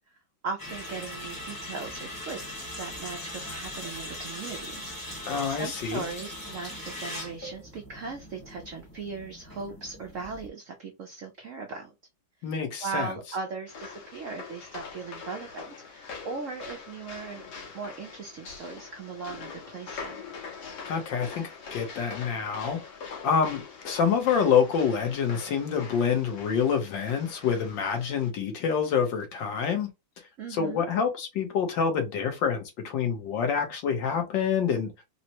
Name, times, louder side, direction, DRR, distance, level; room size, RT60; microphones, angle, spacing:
voice 1, 0.4-11.9 12.8-17.4 17.7-20.2 30.4-30.8, right 4 dB, 70° right, 0.7 m, -38 dB
sound 1, 0.6-10.5, left 1 dB, 15° left, 0.8 m, -40 dB
voice 2, 5.3-6.0 12.4-13.1 20.8-22.8 23.2-29.9 30.5-34.9, left 6 dB, 75° left, 1.6 m, -27 dB
sound 2, 13.7-28.3, left 5 dB, 90° left, 1.9 m, -43 dB
4.1 x 2.1 x 2.9 m
omnidirectional pair, 2.1 m